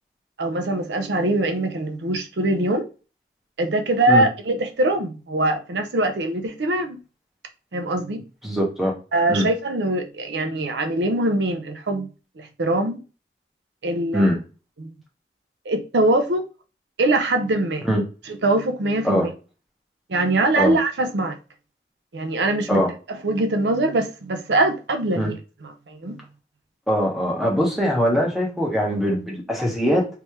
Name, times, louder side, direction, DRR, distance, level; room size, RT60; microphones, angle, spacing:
voice 1, 0.4-2.9 3.6-7.0 7.7-8.2 9.1-12.1 12.4-13.0 13.8-14.3 14.8-15.0 15.7-16.4 17.0-17.9 18.3-19.3 20.1-21.4 22.1-25.4 25.6-26.2, right 2 dB, 85° right, 0.6 m, -23 dB
voice 2, 8.4-8.9 9.3-9.5 14.1-14.3 17.9-18.0 19.0-19.3 20.6-20.7 22.7-22.9 25.1-25.3 26.9-30.1, equal, ahead, 1.0 m, -21 dB
3.3 x 3.2 x 3.0 m
head